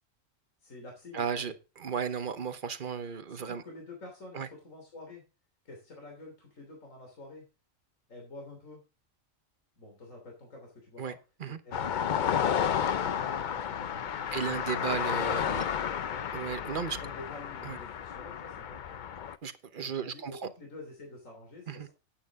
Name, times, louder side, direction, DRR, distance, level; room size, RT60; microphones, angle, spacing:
voice 1, 0.6-1.5 3.3-5.2 5.6-7.4 8.1-8.8 9.8-11.2 11.4-14.9 15.5-16.3 16.9-19.0 19.8-21.9, left 2 dB, 75° left, 3.5 m, -48 dB
voice 2, 1.1-3.6 4.3-4.5 11.0-11.1 11.4-11.6 14.3-15.6 16.3-17.0 17.6-17.8 19.4-20.5 21.7-21.9, right 7 dB, 45° right, 1.0 m, -35 dB
sound 1, 11.7-19.4, left 8 dB, 55° left, 0.5 m, -32 dB
11.0 x 9.2 x 3.6 m
omnidirectional pair, 1.4 m